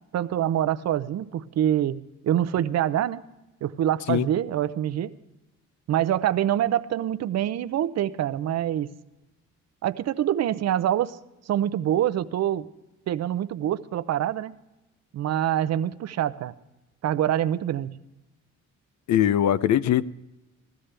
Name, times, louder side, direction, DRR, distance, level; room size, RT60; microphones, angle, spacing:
voice 1, 0.1-3.2 3.6-5.1 5.9-8.9 9.8-11.2 11.5-12.7 13.1-14.6 15.1-16.5 17.0-17.9, right 11 dB, 60° right, 15 dB, 0.6 m, -25 dB
voice 2, 19.1-20.0, left 11 dB, 70° left, 16 dB, 0.5 m, -21 dB
17.0 x 13.0 x 3.3 m, 0.98 s
cardioid pair, 90°, 30 cm